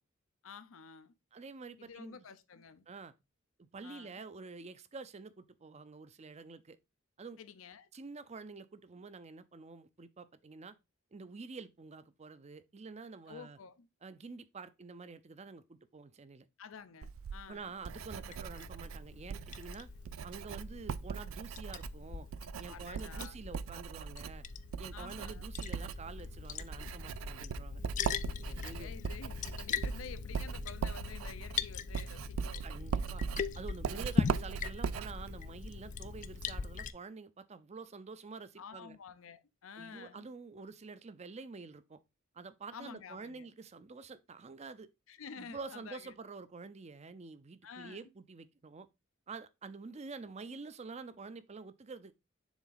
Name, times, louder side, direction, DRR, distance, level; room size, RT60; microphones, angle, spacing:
voice 1, 0.4-1.1 1.8-2.8 3.8-4.2 7.4-7.9 13.3-13.9 16.6-17.6 22.7-23.4 24.9-25.4 28.4-32.7 33.9-34.3 38.6-40.2 42.7-43.5 45.1-46.1 47.6-48.1, left 6 dB, 85° left, 0.6 m, -50 dB
voice 2, 1.3-2.2 2.9-3.1 3.6-6.8 7.2-7.4 7.9-10.7 11.1-13.6 14.0-16.5 17.5-19.9 20.2-22.3 22.6-24.4 24.8-27.8 28.5-28.9 32.6-33.2 33.5-39.0 39.8-42.0 42.3-44.9 45.4-48.9 49.3-52.1, right 4 dB, 35° right, 0.5 m, -48 dB
Writing, 17.0-36.5, right 6 dB, 90° right, 0.4 m, -40 dB
Liquid, 18.0-36.9, left 6 dB, 40° left, 0.4 m, -41 dB
7.2 x 3.5 x 3.9 m
head